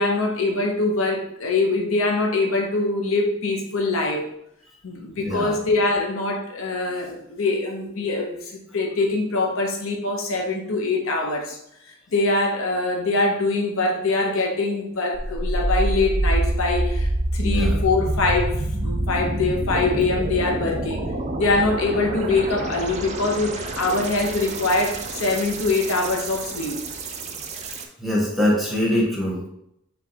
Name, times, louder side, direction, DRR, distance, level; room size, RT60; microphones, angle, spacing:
voice 1, 0.0-4.2 4.8-11.6 12.1-21.0 21.4-26.8, left 3 dB, 70° left, 1 dB, 0.7 m, -23 dB
voice 2, 5.2-5.5 17.4-17.8 28.0-29.5, left 1 dB, ahead, -3 dB, 0.9 m, -23 dB
sound 1, 15.1-27.9, right 1 dB, 35° right, 0.4 m, -27 dB
4.4 x 3.2 x 2.8 m, 0.78 s
head